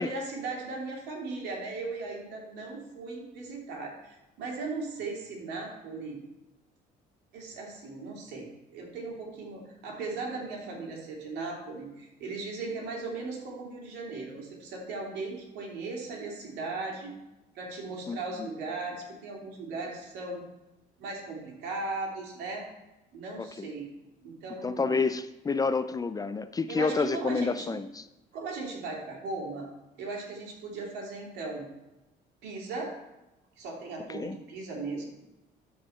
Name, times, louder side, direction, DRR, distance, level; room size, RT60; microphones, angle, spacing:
voice 1, 0.0-6.2 7.3-17.1 17.5-20.4 21.0-22.7 23.1-23.9 24.2-25.0 26.7-27.8 28.3-29.7 30.0-31.7 32.4-32.9 33.6-35.1, right 3 dB, 85° right, -1 dB, 2.9 m, -37 dB
voice 2, 18.1-18.5 23.4-23.7 24.6-28.0 34.1-34.4, left 4 dB, 20° left, 12 dB, 0.4 m, -29 dB
13.0 x 4.9 x 4.4 m, 0.99 s
cardioid pair, 110°, 17 cm